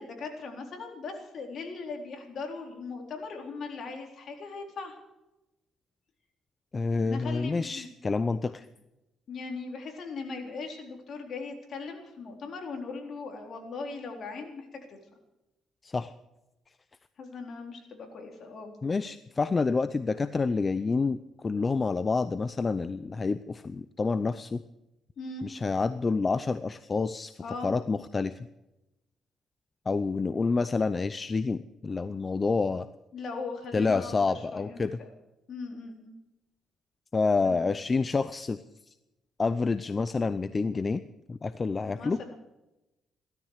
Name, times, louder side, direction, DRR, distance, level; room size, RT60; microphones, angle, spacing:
voice 1, 0.0-5.0 6.9-7.9 9.3-15.0 17.2-18.7 25.2-25.5 27.4-27.7 33.1-35.1 35.5-36.2 37.4-37.7 41.9-42.4, left 4 dB, 60° left, 3 dB, 3.9 m, -39 dB
voice 2, 6.7-8.7 15.8-16.1 18.8-24.6 25.4-28.4 29.9-32.9 33.7-35.0 37.1-38.6 39.4-41.0 41.3-42.2, left 4 dB, 30° left, 13 dB, 0.6 m, -28 dB
16.5 x 13.0 x 6.6 m, 0.95 s
cardioid pair, 90°, 0 cm